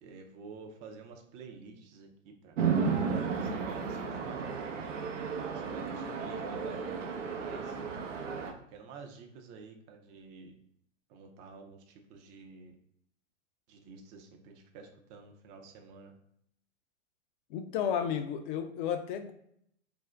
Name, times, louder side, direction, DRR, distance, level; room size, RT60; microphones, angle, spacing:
voice 1, 0.0-4.5 5.4-7.8 8.4-10.5 11.1-12.7 13.7-16.1, right 5 dB, 30° right, 4 dB, 0.4 m, -49 dB
Chatter / Traffic noise roadway noise / Train, 2.6-8.5, right 5 dB, 90° right, 0.5 m, -33 dB
voice 2, 17.5-19.3, left 8 dB, 45° left, 8 dB, 0.4 m, -32 dB
2.5 x 2.1 x 3.3 m, 0.70 s
hypercardioid pair, 110°, 36 cm